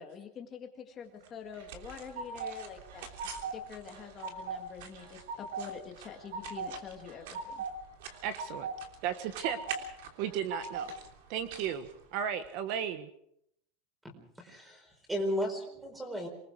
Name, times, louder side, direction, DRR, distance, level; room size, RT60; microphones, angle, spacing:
voice 1, 0.0-3.1 3.5-7.6, left 7 dB, 20° left, 3 dB, 2.0 m, -46 dB
sound 1, 1.2-12.5, right 7 dB, 65° right, 3.3 m, -49 dB
sound 2, 1.5-2.5 2.9-3.6 3.9-4.6 5.0-5.7 6.0-6.7 7.1-7.7 8.1-8.8 9.1-9.8 10.2-11.0, right 5 dB, 90° right, 6.0 m, -39 dB
voice 2, 8.2-8.7 9.0-10.9 11.3-13.1, right 9 dB, 45° right, 10 dB, 1.3 m, -35 dB
voice 3, 14.0-16.3, equal, 5° right, 5 dB, 4.4 m, -35 dB
27.0 x 20.0 x 4.8 m, 0.72 s
supercardioid pair, 180°, 0 cm